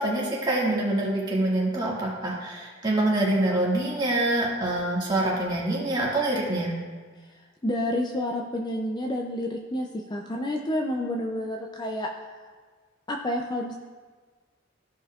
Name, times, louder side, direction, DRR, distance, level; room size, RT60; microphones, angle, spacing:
voice 1, 0.0-6.7, right 1 dB, 25° right, -5 dB, 1.9 m, -25 dB
voice 2, 7.6-12.1 13.1-13.7, left 1 dB, 20° left, 1 dB, 0.5 m, -29 dB
15.0 x 5.4 x 2.4 m, 1.4 s
head